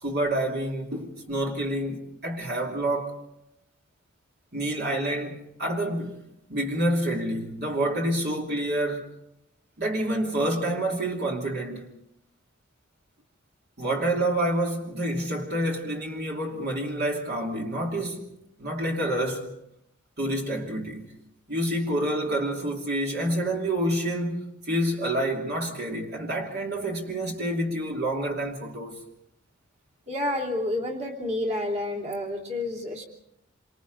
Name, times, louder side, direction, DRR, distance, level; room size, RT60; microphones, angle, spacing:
voice 1, 0.0-3.2 4.5-6.2 6.5-9.1 9.8-11.9 13.8-18.3 18.6-19.6 20.2-21.0 21.5-29.0, right 1 dB, 50° right, 2.8 m, -28 dB
voice 2, 30.1-33.0, left 1 dB, 35° right, 3.0 m, -29 dB
27.5 x 25.5 x 4.0 m
head